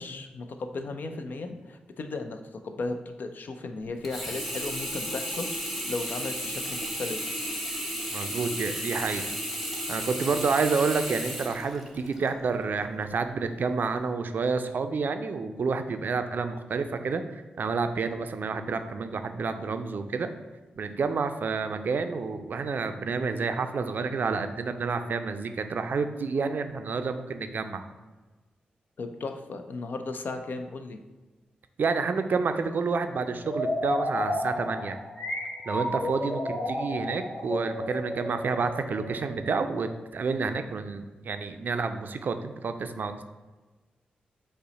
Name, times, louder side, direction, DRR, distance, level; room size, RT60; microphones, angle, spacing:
voice 1, 0.0-7.2 29.0-31.0 36.2-36.3, left 3 dB, 65° left, 6 dB, 0.4 m, -36 dB
Sink (filling or washing), 4.0-12.3 12.8-12.9, equal, ahead, 0.9 m, -34 dB
voice 2, 8.1-9.3 9.9-17.2 17.6-20.3 20.8-27.8 31.8-35.0 35.7-43.2, right 4 dB, 60° right, 8 dB, 0.4 m, -29 dB
sound 1, 33.4-40.1, left 1 dB, 50° left, 1.1 m, -32 dB
5.4 x 2.1 x 4.0 m, 1.2 s
supercardioid pair, 45°, 3 cm